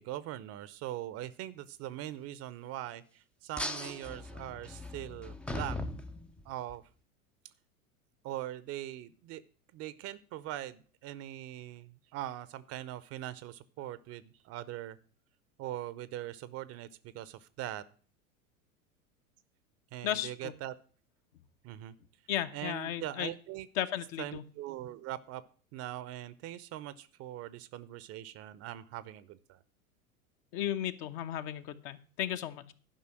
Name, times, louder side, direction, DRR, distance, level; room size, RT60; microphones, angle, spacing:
voice 1, 0.0-5.8 6.5-6.8 8.2-9.4 9.7-15.0 15.6-16.9 17.1-17.8 19.9-20.7 21.6-21.9 22.5-23.7 24.2-25.4 25.7-29.6, right 13 dB, 35° right, 17 dB, 0.7 m, -41 dB
sound 1, 3.6-6.8, left 1 dB, 5° left, 0.4 m, -39 dB
voice 2, 20.0-20.5 22.3-23.3 23.7-24.4 30.5-32.7, left 11 dB, 50° left, 9 dB, 1.0 m, -35 dB
11.5 x 5.5 x 7.6 m, 0.41 s
figure-of-eight pair, 90°, 43 cm